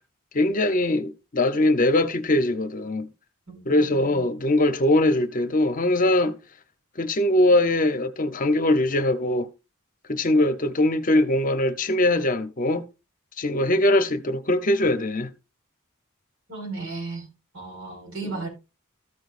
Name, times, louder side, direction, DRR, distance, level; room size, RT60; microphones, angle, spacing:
voice 1, 0.3-3.1 3.7-6.3 7.0-9.5 10.1-12.8 13.4-15.3 18.3-18.4, left 1 dB, 40° left, 0.8 m, -21 dB
voice 2, 3.5-4.2 16.5-17.3 17.5-18.5, right 3 dB, 75° right, 4.7 m, -35 dB
14.0 x 6.2 x 2.5 m
head